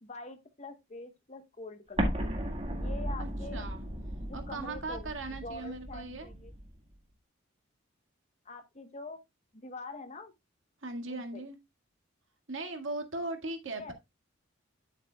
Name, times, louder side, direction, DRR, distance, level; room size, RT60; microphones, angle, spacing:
voice 1, 0.0-2.1 2.7-3.6 4.3-5.1 5.4-6.5 8.4-9.2 9.5-10.3 11.1-11.4 13.8-13.9, left 2 dB, 35° left, 1.0 m, -45 dB
Explosion, 2.0-6.7, equal, 30° right, 1.8 m, -35 dB
voice 2, 3.2-3.8 4.3-6.3 10.8-11.6 12.5-13.9, right 2 dB, 75° right, 1.8 m, -38 dB
9.9 x 8.0 x 2.2 m
head